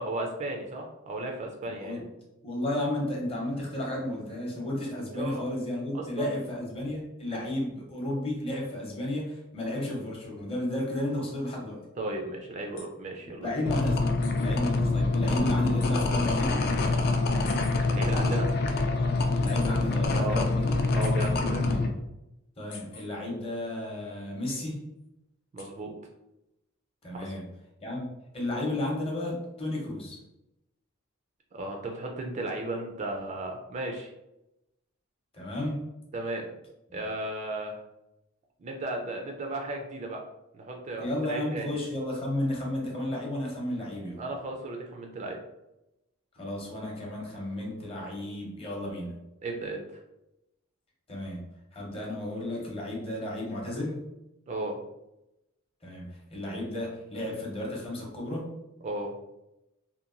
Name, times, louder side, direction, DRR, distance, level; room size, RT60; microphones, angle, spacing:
voice 1, 0.0-2.0 5.1-5.4 5.9-6.3 12.0-13.6 17.9-18.5 20.2-20.4 20.9-21.8 25.5-26.0 27.1-27.3 31.5-34.1 36.1-36.5 36.9-37.8 38.6-40.2 40.5-41.7 44.2-45.4 49.4-49.8 54.5-54.8 58.8-59.1, right 2 dB, 35° right, 2 dB, 0.3 m, -35 dB
voice 2, 2.4-11.8 13.4-16.7 19.4-20.8 21.6-21.9 22.6-24.8 27.0-27.5 27.8-30.2 35.3-35.8 36.9-37.0 41.0-44.2 46.3-49.1 51.1-51.4 51.7-54.0 55.8-58.5, left 1 dB, 30° left, -2 dB, 0.7 m, -33 dB
sound 1, 12.8-12.9 14.2-14.5 15.8-16.1 17.4-17.7 19.4-19.7 21.0-21.3 22.7-23.0 24.5-24.6 25.6-25.7, left 4 dB, 80° left, 0.7 m, -45 dB
sound 2, 13.6-21.9, left 3 dB, 50° left, 0.3 m, -25 dB
2.8 x 2.1 x 2.5 m, 0.90 s
head